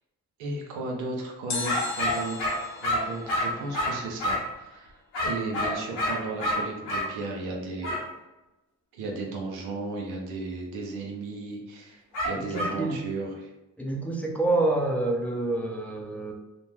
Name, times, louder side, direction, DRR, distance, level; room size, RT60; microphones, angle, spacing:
voice 1, 0.4-8.0 8.9-13.5, right 3 dB, 80° right, 0 dB, 0.6 m, -35 dB
sound 1, 1.5-4.6 4.8-4.9, left 4 dB, 45° left, 0.6 m, -38 dB
sound 2, 1.6-4.5 5.1-7.1 7.8-8.1 12.1-12.8, left 1 dB, 85° left, 0.8 m, -28 dB
voice 2, 12.4-13.0 13.8-16.3, right 2 dB, 5° left, -1 dB, 0.6 m, -27 dB
2.5 x 2.1 x 3.1 m, 1.0 s
hypercardioid pair, 45°, 38 cm